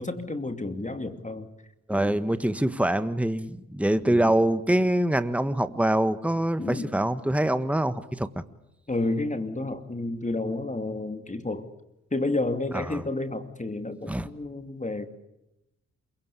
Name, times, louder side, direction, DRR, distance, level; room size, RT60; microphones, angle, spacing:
voice 1, 0.0-1.5 1.9-2.2 4.0-4.3 6.6-7.0 8.9-11.7 12.1-15.1, left 2 dB, 25° left, 8 dB, 2.6 m, -31 dB
voice 2, 1.9-8.3 12.7-13.0 14.1-14.3, right 1 dB, 5° right, 11 dB, 1.6 m, -24 dB
28.0 x 17.5 x 8.5 m, 0.89 s
supercardioid pair, 45°, 30 cm